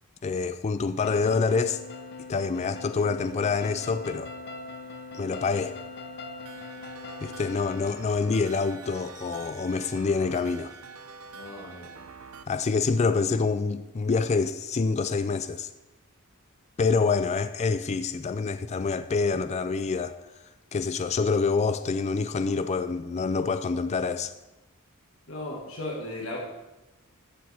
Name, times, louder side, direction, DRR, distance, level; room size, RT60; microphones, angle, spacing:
voice 1, 0.2-1.8 2.3-4.3 5.1-5.7 7.2-10.7 12.5-15.7 16.8-20.2 20.7-24.3, left 4 dB, 30° left, 0.3 m, -26 dB
sound 1, 1.0-7.9, left 3 dB, 50° left, 0.8 m, -41 dB
sound 2, 6.4-12.4, right 4 dB, 85° right, 0.7 m, -46 dB
voice 2, 11.3-11.9 25.3-26.4, left 1 dB, 65° left, 1.7 m, -36 dB
13.5 x 7.3 x 3.5 m
head